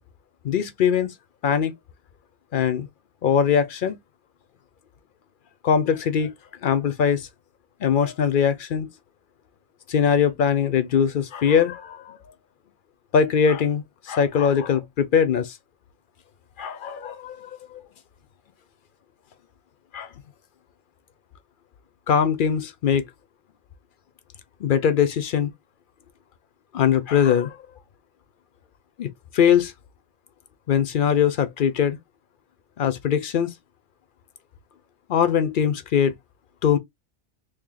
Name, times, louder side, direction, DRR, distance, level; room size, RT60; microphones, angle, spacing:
voice 1, 0.4-1.1 1.4-1.7 2.5-2.9 3.2-4.0 5.6-6.3 6.6-7.3 7.8-8.9 9.9-12.2 13.1-15.6 16.6-17.8 19.9-20.1 22.1-23.1 24.6-25.5 26.7-27.6 29.0-29.7 30.7-32.0 32.8-33.5 35.1-36.1 36.6-36.8, left 7 dB, 55° left, 0.7 m, -21 dB
3.1 x 2.6 x 3.7 m
omnidirectional pair, 1.2 m